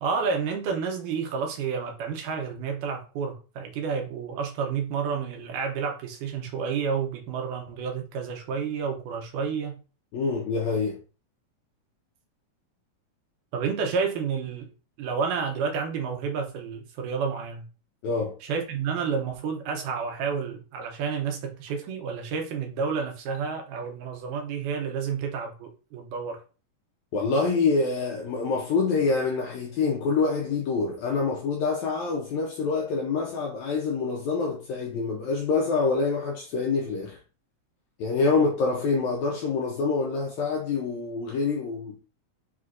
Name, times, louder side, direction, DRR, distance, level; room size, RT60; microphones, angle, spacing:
voice 1, 0.0-9.8 13.5-14.7 15.0-17.7 18.4-26.4, right 6 dB, 80° right, 2.1 m, -30 dB
voice 2, 10.1-11.0 18.0-18.3 27.1-37.2 38.0-42.0, left 4 dB, 80° left, 1.7 m, -26 dB
5.8 x 2.7 x 2.4 m
omnidirectional pair, 4.0 m